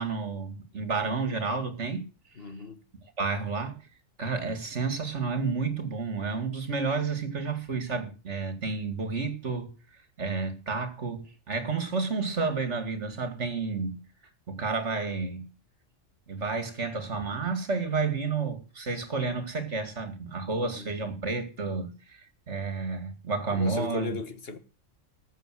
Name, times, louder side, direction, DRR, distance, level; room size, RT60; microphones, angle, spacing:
voice 1, 0.0-2.1 3.2-3.8 4.2-9.7 10.2-14.0 14.5-15.5 16.3-24.1, right 4 dB, 60° right, 2.7 m, -31 dB
voice 2, 2.4-2.8 20.6-20.9 23.5-24.6, left 4 dB, 50° left, 1.8 m, -36 dB
14.0 x 7.4 x 7.8 m
omnidirectional pair, 1.3 m